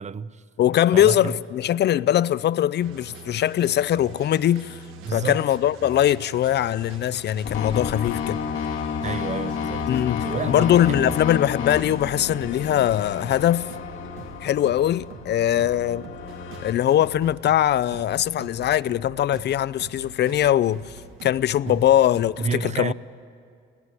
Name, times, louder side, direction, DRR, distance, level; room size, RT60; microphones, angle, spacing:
voice 1, 0.0-0.4 0.9-1.3 5.0-5.4 7.9-8.0 9.0-9.9 10.2-11.2 21.6-21.8 22.4-22.9, right 5 dB, 35° right, 0.7 m, -30 dB
voice 2, 0.6-4.8 5.1-8.4 9.9-13.7 14.4-16.1 16.6-20.9 21.2-22.9, left 11 dB, 60° left, 0.5 m, -21 dB
sound 1, 2.8-22.3, right 4 dB, 85° right, 1.5 m, -44 dB
sound 2, 7.4-16.7, left 7 dB, 90° left, 1.9 m, -31 dB
19.0 x 17.5 x 9.7 m
cardioid pair, 90°, 20 cm